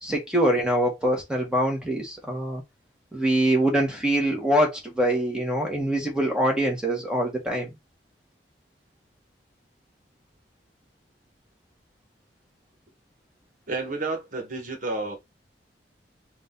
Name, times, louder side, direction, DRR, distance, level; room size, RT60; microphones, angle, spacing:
voice 1, 0.0-2.6 3.1-7.7, right 1 dB, 5° right, 1.6 m, -24 dB
voice 2, 13.7-15.2, right 3 dB, 50° right, 1.5 m, -30 dB
3.8 x 2.7 x 3.8 m
head